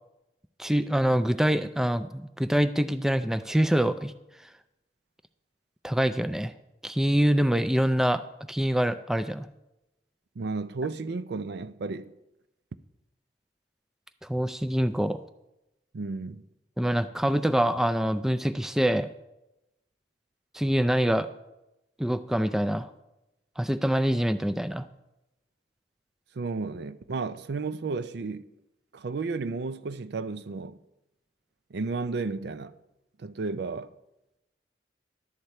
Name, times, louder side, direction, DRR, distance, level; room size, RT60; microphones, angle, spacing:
voice 1, 0.6-4.1 5.8-6.5 6.8-8.2 8.5-9.5 14.3-15.2 16.8-19.1 20.5-21.3 22.0-22.9 23.6-24.9, equal, 5° right, 0.3 m, -25 dB
voice 2, 10.4-12.1 15.9-16.4 26.3-28.5 28.9-30.8 31.7-32.8 33.2-33.9, right 4 dB, 65° right, 0.5 m, -33 dB
11.5 x 4.3 x 8.0 m
head